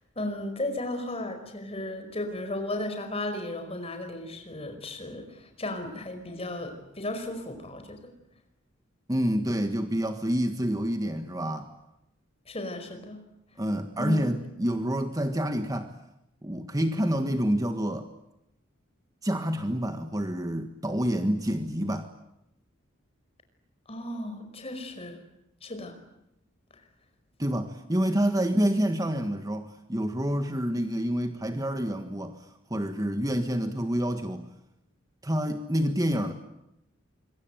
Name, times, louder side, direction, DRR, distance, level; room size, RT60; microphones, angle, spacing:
voice 1, 0.1-8.1 12.5-13.2 14.0-14.2 23.9-25.2 25.6-25.9, left 1 dB, 30° left, 6 dB, 5.1 m, -35 dB
voice 2, 9.1-11.7 13.6-15.9 16.4-18.1 19.2-22.1 27.4-34.5 35.2-36.3, equal, 20° right, 7 dB, 1.6 m, -28 dB
26.0 x 23.5 x 9.1 m, 0.84 s
head